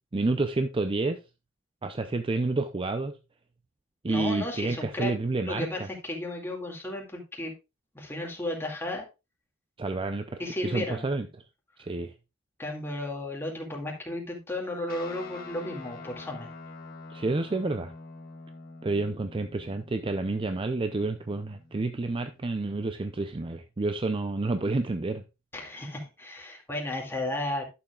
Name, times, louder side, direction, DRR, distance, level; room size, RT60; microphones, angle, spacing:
voice 1, 0.1-1.2 1.8-3.2 4.0-5.9 9.8-11.3 11.8-12.1 17.1-17.9 18.8-25.2, right 3 dB, 25° right, 0.5 m, -29 dB
voice 2, 4.1-5.1 5.4-7.5 7.9-9.1 10.4-11.1 12.6-16.5 25.5-27.7, left 1 dB, 10° left, 2.2 m, -34 dB
Guitar, 14.9-22.5, left 3 dB, 45° left, 1.7 m, -46 dB
11.5 x 7.0 x 2.3 m
head